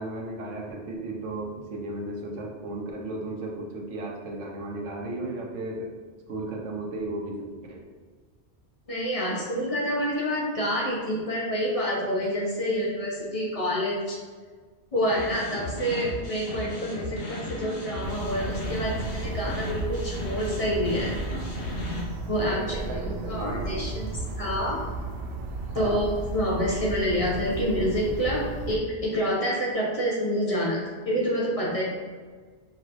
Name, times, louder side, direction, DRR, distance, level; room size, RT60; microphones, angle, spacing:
voice 1, 0.0-5.9 6.3-7.8 22.4-23.8 25.7-26.0, right 2 dB, 90° right, 0 dB, 1.1 m, -35 dB
voice 2, 8.9-14.2 14.9-21.1 22.3-24.8 25.7-31.8, equal, 35° left, -4 dB, 0.8 m, -28 dB
sound 1, 15.1-22.0, left 1 dB, 60° left, 1.1 m, -35 dB
sound 2, 18.0-28.8, right 2 dB, 60° right, 0.7 m, -34 dB
5.5 x 3.1 x 2.6 m, 1.5 s
omnidirectional pair, 1.2 m